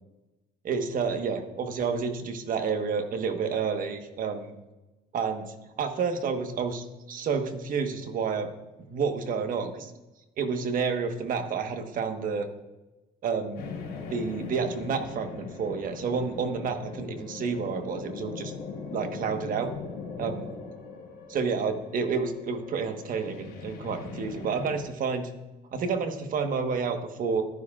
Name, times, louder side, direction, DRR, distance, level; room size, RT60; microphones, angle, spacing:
voice 1, 0.6-4.5 5.1-8.5 8.9-9.9 10.4-12.5 13.2-13.7 14.1-18.5 18.9-19.7 20.2-20.5 21.3-25.3 25.7-27.4, right 5 dB, 55° right, 7 dB, 1.3 m, -30 dB
sound 1, 13.5-24.8, left 5 dB, 85° left, 3.2 m, -40 dB
14.5 x 11.5 x 2.4 m, 1.0 s
cardioid pair, 110°, 17 cm